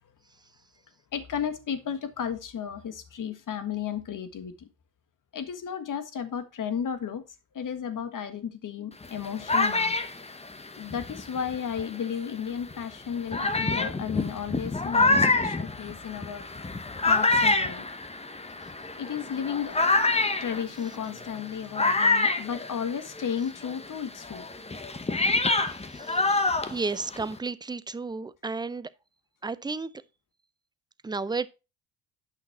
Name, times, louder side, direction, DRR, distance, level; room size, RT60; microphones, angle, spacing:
voice 1, 1.1-4.7 5.3-7.2 7.5-9.9 10.8-16.4 17.0-17.9 19.0-19.8 20.4-24.4, left 8 dB, 45° left, 1.6 m, -33 dB
sound 1, 9.0-12.0 12.7-12.8 13.3-23.3 23.6-27.4, left 3 dB, 15° left, 1.0 m, -26 dB
voice 2, 25.9-28.9 29.4-29.9 31.0-31.5, right 4 dB, 10° right, 0.5 m, -33 dB
8.9 x 5.8 x 4.3 m
supercardioid pair, 65°, 42 cm